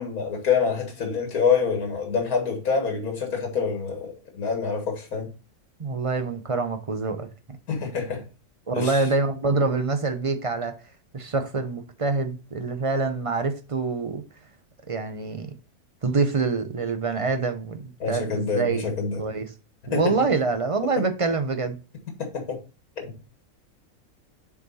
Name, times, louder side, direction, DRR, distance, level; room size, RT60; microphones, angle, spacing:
voice 1, 0.0-5.3 7.7-8.3 8.7-9.1 18.0-19.2 19.9-20.1 22.2-22.6 23.0-23.1, left 5 dB, 75° left, 2.2 m, -26 dB
voice 2, 5.8-7.3 8.7-10.7 11.1-14.2 14.9-15.5 16.0-18.8 19.2-19.5 19.9-21.8, right 4 dB, 35° right, 0.5 m, -25 dB
6.9 x 4.8 x 4.0 m
omnidirectional pair, 1.5 m